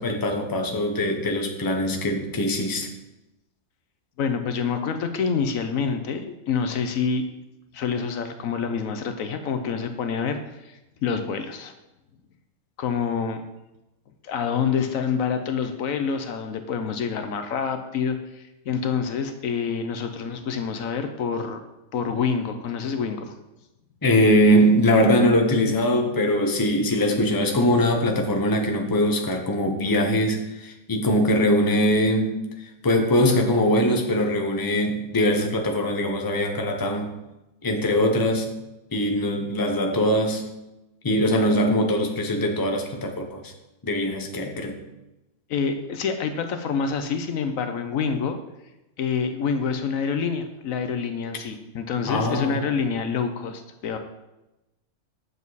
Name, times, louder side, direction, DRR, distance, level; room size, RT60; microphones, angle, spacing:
voice 1, 0.0-2.9 24.0-32.4 32.8-37.1 37.6-38.5 38.9-40.5 41.0-43.4 43.8-44.8 52.1-52.6, equal, 20° left, 3 dB, 0.8 m, -22 dB
voice 2, 4.2-7.2 7.7-11.7 12.8-13.4 14.2-21.6 21.9-23.3 45.5-48.4 49.0-54.0, left 6 dB, 70° left, 8 dB, 1.1 m, -27 dB
8.0 x 7.2 x 4.1 m, 0.96 s
omnidirectional pair, 1.5 m